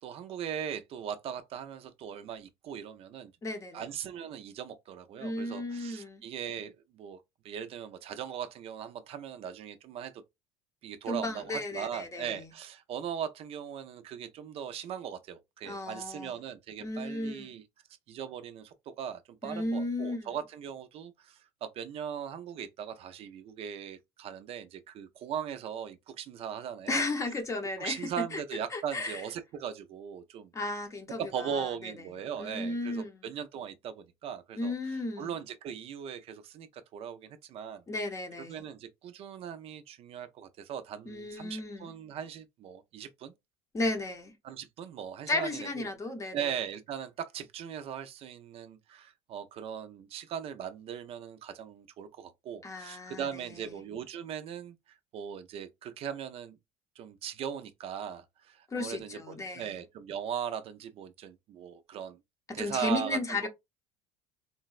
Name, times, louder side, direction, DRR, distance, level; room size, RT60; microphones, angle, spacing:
voice 1, 0.0-3.3 3.7-10.1 10.8-17.6 18.1-27.0 27.8-30.5 31.2-37.8 38.5-43.3 44.4-45.9 46.3-56.6 57.0-62.2 62.5-63.5, right 8 dB, 50° right, 0.4 m, -39 dB
voice 2, 3.4-3.9 5.2-6.2 11.1-12.4 15.6-16.3 16.8-17.5 19.4-20.3 26.9-28.4 28.7-29.2 30.5-31.9 32.4-33.2 34.6-35.3 37.9-38.6 41.1-41.9 43.7-44.3 45.3-46.5 52.6-53.7 58.7-59.7 62.5-63.5, left 2 dB, 25° left, 0.7 m, -34 dB
3.8 x 2.0 x 2.4 m
cardioid pair, 115°, 13 cm